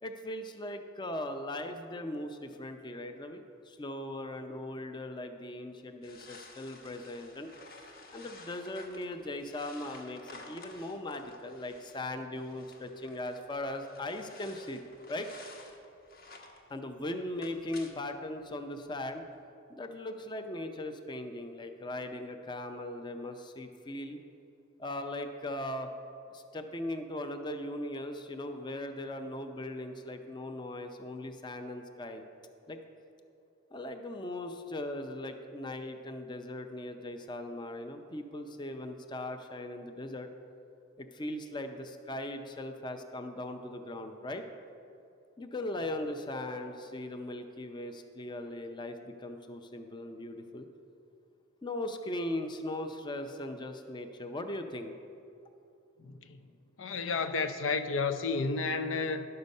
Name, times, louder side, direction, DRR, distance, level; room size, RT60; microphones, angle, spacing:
voice 1, 0.0-7.5 8.1-14.8 15.1-15.3 16.7-19.2 19.7-24.2 24.8-25.9 26.3-32.2 32.7-32.8 33.7-40.3 41.0-44.4 45.4-50.7 51.6-54.9, left 1 dB, 25° left, 6 dB, 0.5 m, -39 dB
sound 1, 6.0-16.7 17.1-18.1 18.4-18.5 18.8-18.9 19.4-19.5, left 3 dB, 50° left, 1.1 m, -53 dB
voice 2, 56.0-56.4 56.8-59.3, left 4 dB, 90° left, 9 dB, 0.6 m, -31 dB
11.5 x 6.7 x 5.3 m, 2.6 s
head